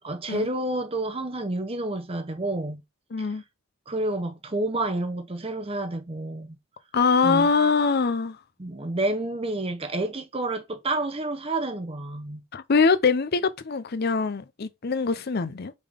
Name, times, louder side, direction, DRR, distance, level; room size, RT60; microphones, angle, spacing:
voice 1, 0.0-2.8 3.2-3.3 3.9-6.6 7.2-7.5 8.6-12.4, right 2 dB, 25° right, 0.8 m, -29 dB
voice 2, 3.1-3.4 6.9-8.4 12.5-15.7, left 4 dB, 45° left, 0.5 m, -23 dB
5.2 x 3.7 x 5.1 m
head